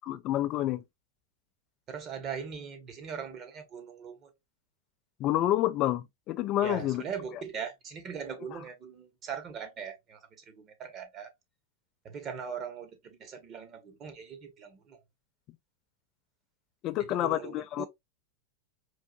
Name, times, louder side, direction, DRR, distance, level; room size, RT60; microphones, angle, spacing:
voice 1, 0.1-0.8 5.2-7.0 16.8-17.8, left 13 dB, 45° left, 0.3 m, -28 dB
voice 2, 1.9-4.3 6.6-11.3 12.0-15.0 17.0-17.9, right 7 dB, 35° right, 1.2 m, -40 dB
4.7 x 2.5 x 2.4 m
hypercardioid pair, 105°, 0 cm